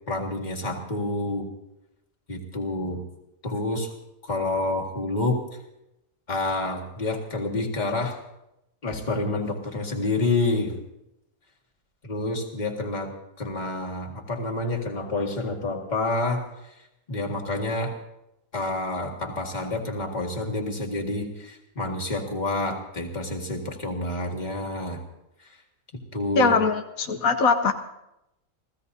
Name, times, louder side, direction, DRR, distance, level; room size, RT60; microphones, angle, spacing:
voice 1, 0.1-1.5 2.3-3.0 3.4-3.9 4.2-5.4 6.3-8.2 8.8-10.7 12.0-13.1 13.4-16.8 17.1-17.9 18.5-25.0 25.4-25.6 26.1-26.5, left 2 dB, 30° left, 0 dB, 2.1 m, -28 dB
voice 2, 26.4-27.7, left 4 dB, 85° left, 6 dB, 1.3 m, -21 dB
29.5 x 15.5 x 2.7 m, 0.87 s
omnidirectional pair, 1.4 m